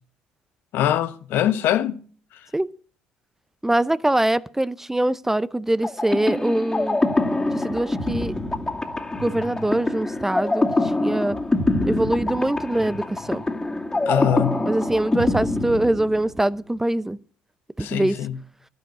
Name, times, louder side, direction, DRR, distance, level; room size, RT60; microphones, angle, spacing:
voice 1, 0.7-2.0 14.0-14.7 17.8-18.4, left 11 dB, 65° left, 1.1 m, -23 dB
voice 2, 3.6-7.0 7.5-8.3 9.2-11.4 11.8-13.4 14.6-17.2 17.8-18.2, right 1 dB, 10° right, 0.7 m, -23 dB
sound 1, 5.8-16.5, left 2 dB, 20° left, 2.5 m, -25 dB
11.5 x 10.5 x 8.3 m
hypercardioid pair, 65°, 4 cm